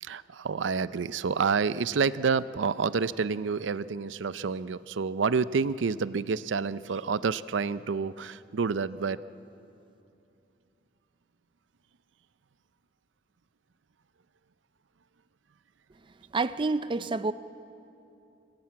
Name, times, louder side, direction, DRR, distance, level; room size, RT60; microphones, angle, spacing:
voice 1, 0.0-9.2, right 5 dB, 80° right, 0.5 m, -28 dB
voice 2, 16.3-17.3, right 3 dB, 25° right, 0.4 m, -28 dB
25.5 x 17.5 x 8.6 m
head